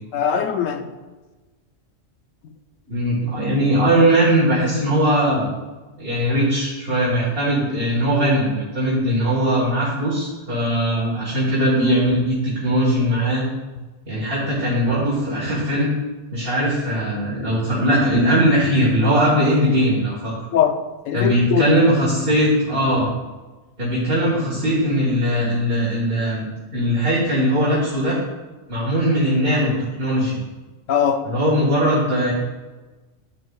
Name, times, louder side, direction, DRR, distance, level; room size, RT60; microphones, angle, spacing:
voice 1, 0.1-0.9 20.5-20.8 21.1-21.7 30.9-31.2, left 8 dB, 80° left, 6 dB, 1.0 m, -20 dB
voice 2, 2.9-5.5 6.0-13.4 14.1-15.9 16.3-20.3 21.1-23.1 23.8-28.2 28.7-30.4 31.2-32.3, equal, 45° right, -6 dB, 1.7 m, -20 dB
10.5 x 7.1 x 2.3 m, 1.2 s
omnidirectional pair, 1.3 m